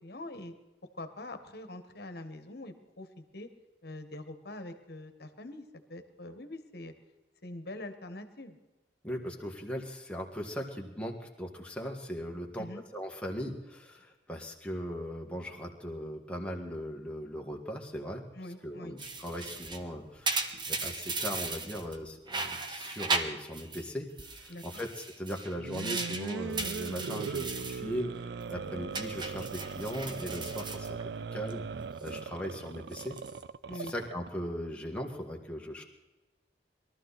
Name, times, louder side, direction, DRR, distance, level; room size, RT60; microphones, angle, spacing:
voice 1, 0.0-0.5 0.9-3.5 3.8-6.9 7.4-8.6 12.6-12.8 18.3-19.0 24.5-24.8 28.5-28.8 33.7-33.9, left 1 dB, 60° left, 9 dB, 1.5 m, -44 dB
voice 2, 9.0-12.7 12.9-18.3 18.6-31.0 31.3-31.6 32.0-33.2 33.7-35.8, equal, 5° left, 0 dB, 1.8 m, -39 dB
sound 1, 19.0-22.0 22.3-23.9 24.2-27.8 28.2-28.5 28.9-31.5 31.8-32.2 32.8-33.4, right 3 dB, 25° right, 1.2 m, -37 dB
sound 2, 25.5-34.3, right 5 dB, 65° right, 0.4 m, -39 dB
22.0 x 13.5 x 4.2 m, 1.1 s
head